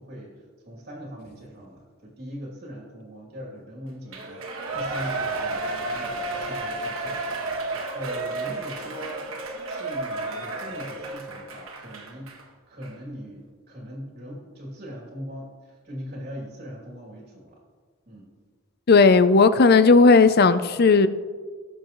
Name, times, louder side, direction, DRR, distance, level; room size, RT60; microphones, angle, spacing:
voice 1, 0.0-7.2 7.9-9.3 9.7-12.3 12.7-17.6 18.1-18.3, equal, 40° right, -3 dB, 2.6 m, -40 dB
Shout / Cheering, 4.1-12.4 12.8-12.9, right 2 dB, 65° right, 1.6 m, -32 dB
voice 2, 18.9-21.1, left 4 dB, 45° left, 13 dB, 0.5 m, -15 dB
19.0 x 7.3 x 3.1 m, 1.5 s
head